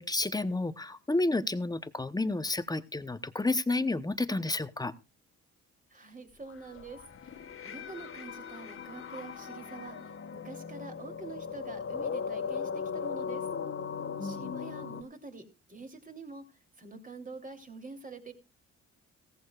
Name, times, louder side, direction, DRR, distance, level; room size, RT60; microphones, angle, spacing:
voice 1, 0.0-4.9 14.2-14.5, left 2 dB, 15° left, 13 dB, 0.9 m, -31 dB
voice 2, 5.9-7.0 7.3-7.4 7.6-13.4 14.2-16.4 16.8-18.3, right 3 dB, 25° right, 5 dB, 3.2 m, -46 dB
sound 1, 6.5-15.0, left 6 dB, 45° left, 1.5 m, -38 dB
16.5 x 15.0 x 2.4 m, 0.29 s
cardioid pair, 90°, 30 cm